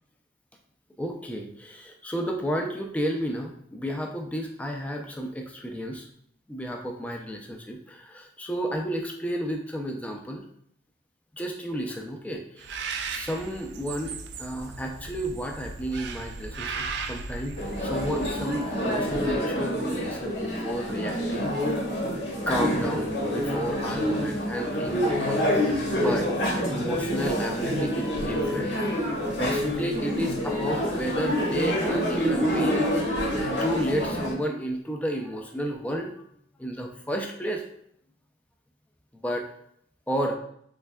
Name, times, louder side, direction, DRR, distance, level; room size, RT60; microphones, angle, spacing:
voice 1, 1.0-6.1 6.5-10.4 11.3-12.7 13.1-14.1 14.4-17.5 17.8-21.6 22.5-26.3 26.7-28.7 29.4-32.9 33.6-36.1 36.6-37.6 39.1-39.5 40.1-40.4, equal, 10° left, 2 dB, 0.3 m, -32 dB
Bird, 12.6-19.0, right 4 dB, 70° right, 0.3 m, -37 dB
sound 1, 17.6-34.3, equal, 75° left, 1.0 m, -27 dB
3.5 x 3.2 x 2.2 m, 0.68 s
head